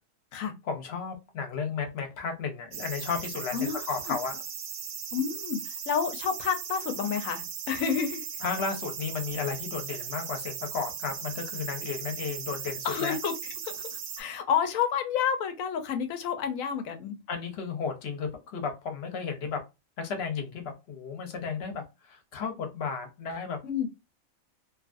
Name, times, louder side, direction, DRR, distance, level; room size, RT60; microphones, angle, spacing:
voice 1, 0.6-4.4 8.4-13.2 17.3-19.6 20.0-23.6, left 5 dB, 55° left, 0.9 m, -34 dB
sound 1, 2.7-14.2, right 7 dB, 75° right, 1.0 m, -38 dB
voice 2, 3.5-4.1 5.1-8.3 12.8-13.3 13.6-17.2 23.6-23.9, left 7 dB, 80° left, 1.0 m, -30 dB
2.7 x 2.4 x 2.4 m
omnidirectional pair, 1.4 m